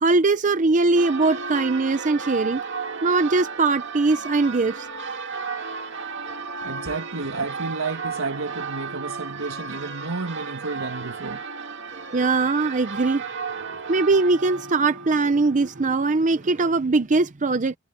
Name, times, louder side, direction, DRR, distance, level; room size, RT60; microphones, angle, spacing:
voice 1, 0.0-2.6 3.0-4.9 6.3-6.4 11.9-13.2 13.9-17.8, right 3 dB, 40° right, 0.7 m, -21 dB
Church bell, 1.0-16.7, right 5 dB, 60° right, 2.2 m, -34 dB
voice 2, 6.6-11.4, right 3 dB, 80° right, 1.7 m, -31 dB
head